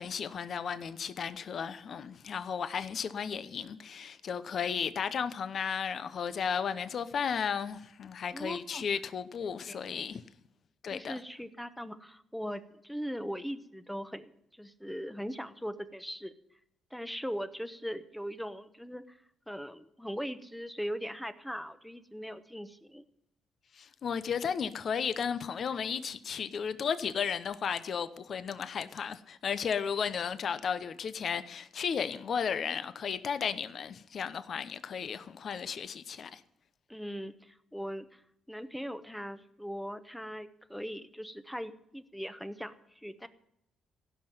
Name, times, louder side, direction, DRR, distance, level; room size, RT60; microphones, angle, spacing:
voice 1, 0.0-10.2 10.8-11.2 23.7-36.4, left 7 dB, 55° left, 0.8 m, -34 dB
voice 2, 8.3-8.9 9.6-10.2 10.9-16.3 16.9-19.2 19.5-23.0 36.9-38.2 38.5-43.3, equal, 5° left, 0.9 m, -40 dB
16.0 x 5.8 x 9.2 m
cardioid pair, 90°, 0 cm